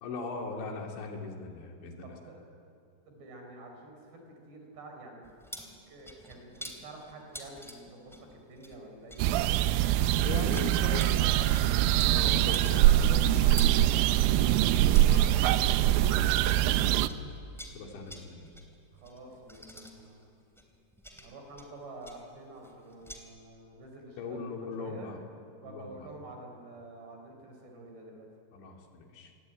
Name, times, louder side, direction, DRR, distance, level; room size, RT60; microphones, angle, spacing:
voice 1, 0.0-2.2 10.2-11.5 11.8-17.2 17.7-18.5 24.2-25.2 25.6-26.1 28.5-29.3, left 3 dB, 65° left, 1 dB, 4.9 m, -40 dB
voice 2, 2.0-2.6 3.1-5.2 5.9-11.6 18.9-20.3 21.2-25.1 25.6-28.3, right 2 dB, 55° right, 3 dB, 6.4 m, -48 dB
sound 1, 5.2-16.8 17.0-23.2, equal, ahead, 1.7 m, -48 dB
sound 2, 9.2-17.1, right 13 dB, 80° right, 3.2 m, -24 dB
28.0 x 21.0 x 9.2 m, 2.5 s
omnidirectional pair, 5.9 m